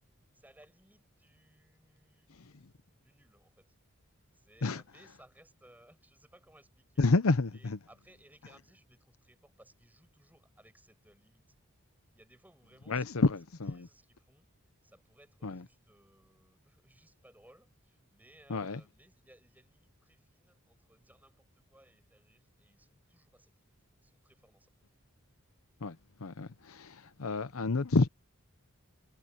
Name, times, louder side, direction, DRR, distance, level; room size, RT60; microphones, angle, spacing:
voice 1, 0.3-2.6 2.9-3.7 4.3-7.1 7.5-11.4 12.1-13.2 13.7-14.5 14.8-23.7 24.0-24.7, right 1 dB, 10° right, 6.0 m, -62 dB
voice 2, 7.0-7.8 12.9-13.9 15.4-15.6 18.5-18.8 25.8-28.1, left 3 dB, 75° left, 0.8 m, -30 dB
head